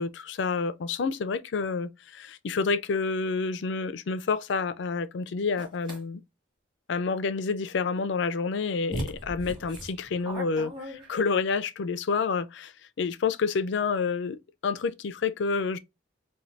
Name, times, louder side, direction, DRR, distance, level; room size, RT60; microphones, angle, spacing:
voice 1, 0.0-6.2 6.9-15.8, left 4 dB, 65° left, 0.4 m, -29 dB
sound 1, 5.6-6.0 8.2-8.3 8.9-11.4, right 1 dB, 25° right, 1.5 m, -37 dB
4.3 x 2.3 x 2.4 m
head